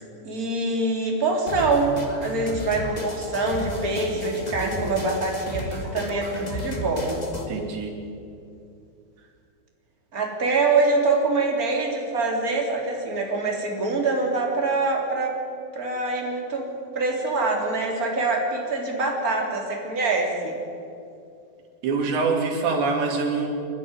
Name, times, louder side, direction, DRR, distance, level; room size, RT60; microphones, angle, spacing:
voice 1, 0.2-7.2 10.1-15.3 15.7-16.7 16.9-20.6, right 3 dB, 20° right, 0 dB, 3.1 m, -24 dB
sound 1, 1.5-7.5, left 1 dB, 45° left, 0.5 m, -33 dB
voice 2, 7.5-7.9 21.8-23.5, right 4 dB, 80° right, 1 dB, 5.0 m, -24 dB
28.5 x 11.5 x 9.7 m, 2.5 s
omnidirectional pair, 5.0 m